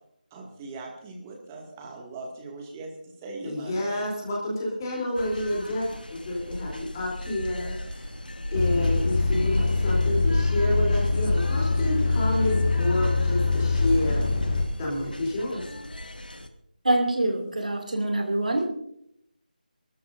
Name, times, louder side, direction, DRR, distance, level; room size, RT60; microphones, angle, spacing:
voice 1, 0.3-2.9 3.2-3.8, right 3 dB, 15° right, 0 dB, 2.2 m, -40 dB
voice 2, 3.4-5.9 6.1-8.1 8.5-14.2 14.8-15.6, left 1 dB, 25° left, -4 dB, 3.4 m, -29 dB
sound 1, 5.1-16.5, left 1 dB, 80° left, 1.5 m, -38 dB
Truck, 8.5-14.6, left 3 dB, 45° left, 2.0 m, -23 dB
voice 3, 16.8-18.7, right 1 dB, 60° right, 3 dB, 2.6 m, -25 dB
25.0 x 13.5 x 2.7 m, 0.73 s
figure-of-eight pair, 160°, 5 cm